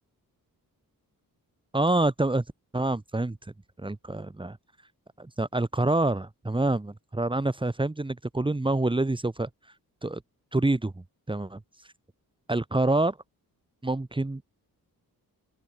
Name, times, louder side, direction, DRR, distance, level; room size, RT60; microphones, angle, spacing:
voice 1, 1.7-2.4 2.7-3.4 3.8-4.6 5.2-9.5 10.0-10.2 10.5-10.9 11.3-11.6 12.5-13.2 13.8-14.4, right 2 dB, 15° right, 3.7 m, -26 dB
open air
wide cardioid pair, 160°, 36 cm